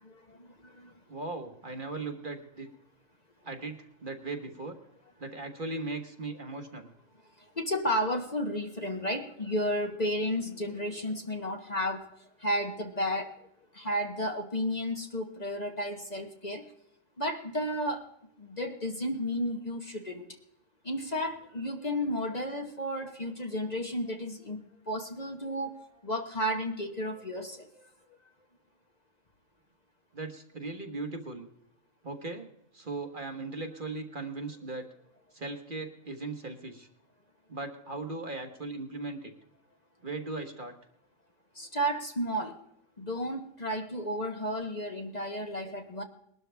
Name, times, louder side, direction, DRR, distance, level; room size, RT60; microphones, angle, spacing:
voice 1, 0.0-0.9 7.4-12.1 12.4-13.3 13.7-16.6 17.2-18.1 18.4-20.3 20.8-25.8 26.0-27.9 41.5-42.6 43.0-46.0, equal, 35° left, 4 dB, 1.2 m, -33 dB
voice 2, 1.1-2.7 3.4-4.8 5.2-6.9 30.1-31.5 32.0-32.5 32.7-34.9 35.3-36.9 37.5-39.3 40.0-40.7, right 3 dB, 40° right, 5 dB, 1.5 m, -38 dB
21.0 x 12.5 x 3.4 m, 0.75 s
omnidirectional pair, 1.3 m